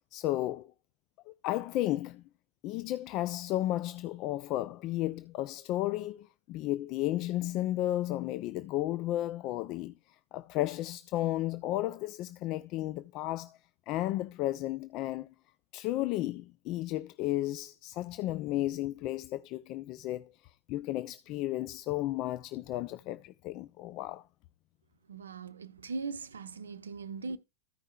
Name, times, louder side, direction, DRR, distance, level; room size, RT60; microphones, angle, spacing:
voice 1, 0.1-0.7 1.4-2.2 2.6-9.9 10.3-13.6 13.9-15.3 15.7-20.3 20.7-24.2, left 15 dB, 40° left, 0.3 m, -33 dB
voice 2, 25.1-27.4, right 4 dB, 70° right, 0.6 m, -39 dB
14.5 x 5.4 x 2.3 m
figure-of-eight pair, 90°, 0 cm